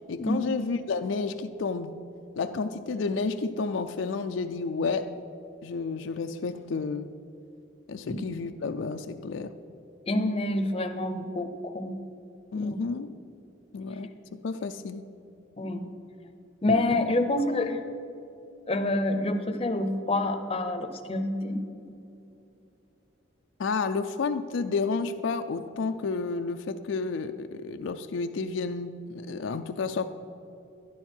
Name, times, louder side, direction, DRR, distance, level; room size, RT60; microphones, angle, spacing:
voice 1, 0.1-1.9 2.4-5.1 5.6-7.1 7.9-9.6 12.5-13.1 13.7-15.0 23.6-30.1, left 4 dB, 75° left, 8 dB, 0.4 m, -31 dB
voice 2, 10.1-12.0 12.5-12.8 15.6-15.9 16.6-17.8 18.7-21.6, left 2 dB, 30° left, 6 dB, 0.7 m, -27 dB
11.5 x 11.0 x 4.4 m, 2.7 s
head